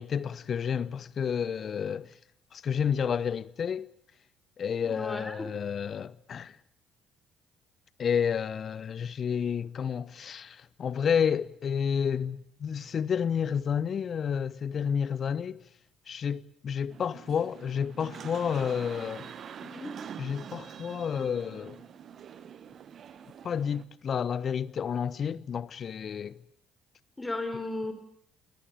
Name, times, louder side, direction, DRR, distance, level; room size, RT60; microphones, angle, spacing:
voice 1, 0.0-2.1 2.5-3.9 4.6-6.6 8.0-15.6 16.1-19.3 20.2-21.8 23.4-26.4, left 7 dB, 50° left, 1.0 m, -30 dB
voice 2, 4.8-5.5 19.6-19.9 27.2-27.9, left 2 dB, 20° left, 4.3 m, -35 dB
sound 1, 16.9-23.8, right 8 dB, 55° right, 1.6 m, -45 dB
21.5 x 19.0 x 9.1 m
hypercardioid pair, 50°, 0 cm